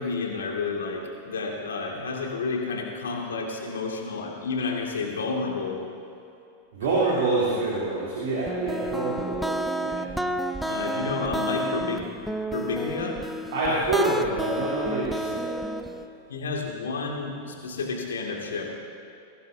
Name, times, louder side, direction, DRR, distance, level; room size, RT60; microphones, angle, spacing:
voice 1, 0.0-5.8 10.6-12.0 12.5-13.2 16.3-18.6, left 4 dB, 65° left, 0 dB, 2.3 m, -30 dB
voice 2, 6.7-9.5 9.8-10.1 13.5-15.6, right 2 dB, 55° right, -6 dB, 3.2 m, -26 dB
sound 1, 8.5-16.1, right 1 dB, ahead, 0.6 m, -30 dB
22.5 x 16.5 x 2.8 m, 2.8 s
figure-of-eight pair, 90°, 0 cm